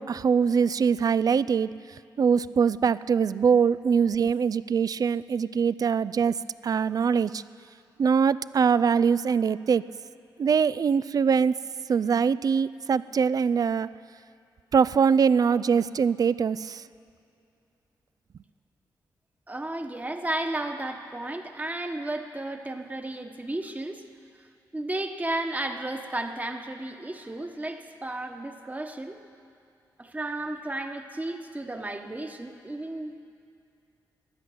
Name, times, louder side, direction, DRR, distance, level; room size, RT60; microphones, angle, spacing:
voice 1, 0.0-1.7 2.2-6.4 6.6-7.4 8.0-9.8 10.4-11.5 11.9-13.9 14.7-16.8, right 6 dB, 50° right, 18 dB, 0.4 m, -23 dB
voice 2, 19.5-24.1 24.7-29.2 30.0-33.3, right 1 dB, 20° right, 5 dB, 1.2 m, -33 dB
15.5 x 10.5 x 7.8 m, 2.5 s
cardioid pair, 70°, 8 cm